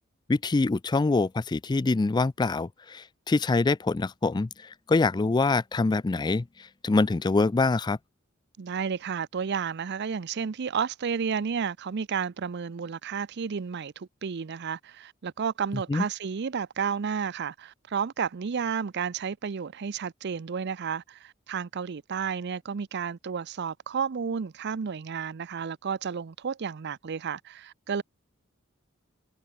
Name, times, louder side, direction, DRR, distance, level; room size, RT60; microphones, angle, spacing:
voice 1, 0.3-8.0 15.9-16.0, left 3 dB, 20° left, 0.3 m, -25 dB
voice 2, 8.6-28.0, right 6 dB, 55° right, 0.5 m, -32 dB
head